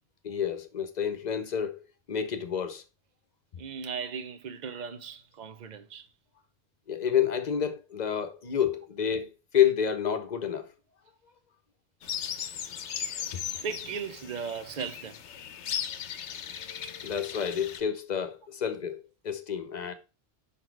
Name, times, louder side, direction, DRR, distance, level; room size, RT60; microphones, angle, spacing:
voice 1, 0.2-2.8 6.9-10.7 13.3-13.4 17.0-19.9, left 8 dB, 45° left, 0.8 m, -29 dB
voice 2, 3.6-6.1 13.0-13.1 13.6-15.2, right 6 dB, 45° right, 0.8 m, -37 dB
sound 1, 12.0-17.8, left 9 dB, 80° left, 1.0 m, -37 dB
5.8 x 4.1 x 4.6 m
omnidirectional pair, 1.2 m